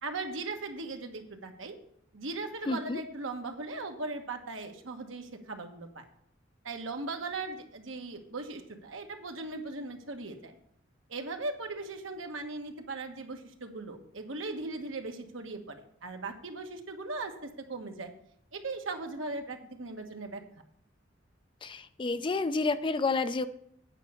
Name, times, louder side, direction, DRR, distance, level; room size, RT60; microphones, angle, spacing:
voice 1, 0.0-1.8 2.1-6.0 6.6-10.5 11.1-18.1 18.5-20.4, right 3 dB, 75° right, 5 dB, 1.3 m, -38 dB
voice 2, 2.7-3.0 21.6-23.5, left 3 dB, 25° left, 12 dB, 0.4 m, -30 dB
9.0 x 5.3 x 7.0 m, 0.70 s
head